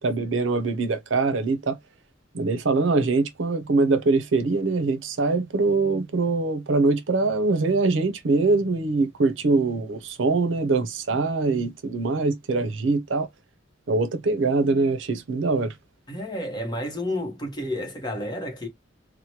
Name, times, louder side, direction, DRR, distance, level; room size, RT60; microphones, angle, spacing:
voice 1, 0.0-1.8 2.3-13.3 13.9-15.7, right 3 dB, 75° right, 0.6 m, -23 dB
voice 2, 16.1-18.7, left 1 dB, 25° left, 0.9 m, -30 dB
2.9 x 2.1 x 2.8 m
head